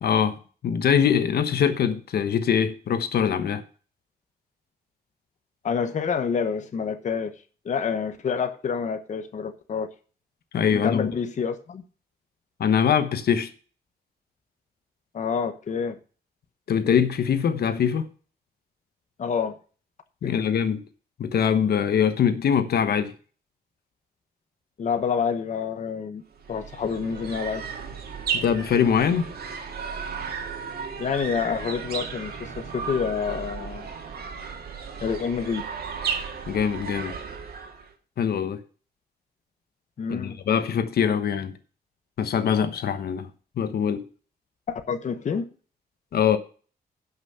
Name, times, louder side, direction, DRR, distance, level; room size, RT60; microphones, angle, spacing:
voice 1, 0.0-3.6 10.5-11.1 12.6-13.5 16.7-18.1 20.2-20.8 21.2-23.1 28.3-29.3 36.5-37.2 38.2-38.6 40.1-41.5 42.2-43.3 43.6-44.0 46.1-46.4, left 7 dB, 80° left, 1.1 m, -23 dB
voice 2, 5.6-7.3 7.6-9.9 10.7-11.8 15.1-15.9 19.2-19.5 20.2-20.5 24.8-26.2 26.5-27.7 31.0-33.9 35.0-35.7 40.0-40.4 44.7-45.5, left 6 dB, 50° left, 1.1 m, -28 dB
sound 1, 26.4-37.9, right 6 dB, 75° right, 2.3 m, -34 dB
11.0 x 6.2 x 6.6 m
wide cardioid pair, 175°, 16 cm